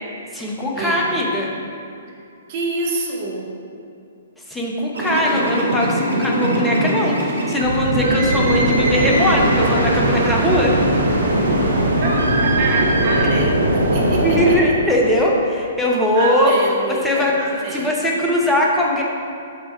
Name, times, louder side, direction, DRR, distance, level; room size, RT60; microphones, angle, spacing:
voice 1, 0.3-1.5 4.5-10.8 14.2-16.5 16.9-17.4 17.7-19.0, left 1 dB, 5° left, -3 dB, 0.8 m, -20 dB
voice 2, 2.5-3.5 12.0-12.1 12.4-14.6 16.1-17.9, right 3 dB, 40° right, -3 dB, 1.1 m, -26 dB
sound 1, 4.9-14.6, right 1 dB, 70° right, 0.9 m, -19 dB
5.1 x 3.5 x 5.6 m, 2.5 s
figure-of-eight pair, 120°, 0 cm